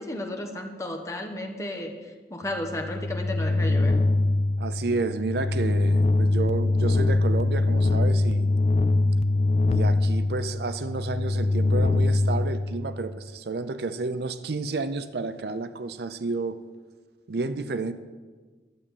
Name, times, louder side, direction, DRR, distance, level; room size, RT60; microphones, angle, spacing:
voice 1, 0.0-1.9 2.3-3.9, left 1 dB, 15° left, 3 dB, 1.2 m, -33 dB
sound 1, 2.6-13.2, left 2 dB, 35° left, 0.3 m, -23 dB
voice 2, 4.6-8.5 9.7-16.6 17.3-17.9, right 3 dB, 60° right, 12 dB, 0.5 m, -31 dB
11.5 x 7.4 x 8.6 m, 1.4 s
head